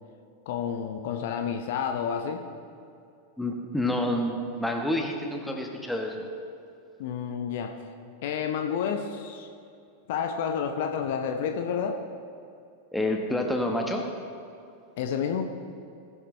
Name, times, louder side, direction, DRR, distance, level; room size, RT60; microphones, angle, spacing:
voice 1, 0.5-2.4 7.0-7.7 8.2-9.5 10.1-12.0 15.0-15.4, left 7 dB, 50° left, 5 dB, 0.8 m, -30 dB
voice 2, 3.4-6.2 12.9-14.0, left 1 dB, 5° left, 2 dB, 1.4 m, -28 dB
19.0 x 9.8 x 3.3 m, 2.5 s
figure-of-eight pair, 90°, 0 cm